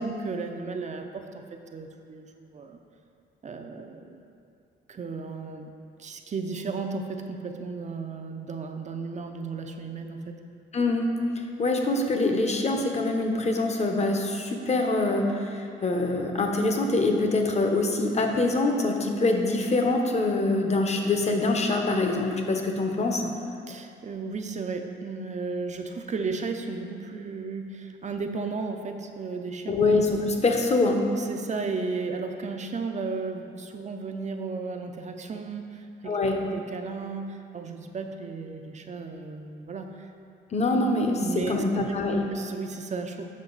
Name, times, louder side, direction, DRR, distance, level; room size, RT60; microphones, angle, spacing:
voice 1, 0.0-2.8 3.4-4.1 4.9-5.7 6.0-10.3 23.7-29.8 31.1-40.1 41.2-42.0 42.3-43.2, right 4 dB, 35° right, 5 dB, 0.5 m, -34 dB
voice 2, 10.7-11.1 11.6-23.3 29.7-31.1 36.0-36.4 40.5-42.3, left 2 dB, 35° left, 3 dB, 0.8 m, -24 dB
7.4 x 5.1 x 3.9 m, 2.5 s
cardioid pair, 90°, 20 cm